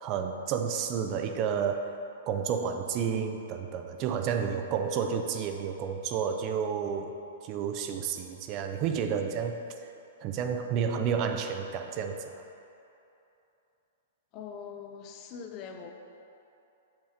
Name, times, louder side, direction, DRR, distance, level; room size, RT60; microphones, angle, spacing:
voice 1, 0.0-1.9 2.3-7.1 7.4-9.6 10.2-12.3, right 7 dB, 40° right, 6 dB, 0.4 m, -30 dB
voice 2, 14.3-15.9, left 6 dB, 40° left, 4 dB, 0.5 m, -42 dB
5.8 x 3.5 x 5.5 m, 2.8 s
hypercardioid pair, 120°, 0 cm